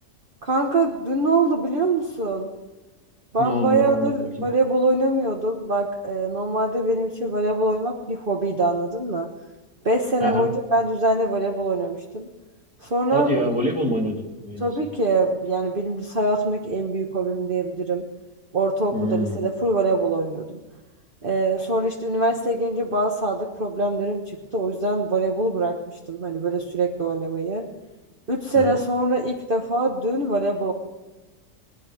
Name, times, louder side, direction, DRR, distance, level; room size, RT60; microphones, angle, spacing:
voice 1, 0.4-2.5 3.3-9.3 9.8-12.3 12.8-13.3 14.6-18.0 18.5-20.6 21.2-24.2 24.5-25.8 26.1-27.6 28.3-30.7, right 2 dB, 35° right, 1 dB, 1.4 m, -23 dB
voice 2, 3.4-4.1 10.2-10.5 13.1-14.7 18.9-19.4 28.5-28.7, equal, 5° right, 0 dB, 2.3 m, -25 dB
21.5 x 10.5 x 4.9 m, 1.1 s
omnidirectional pair, 1.6 m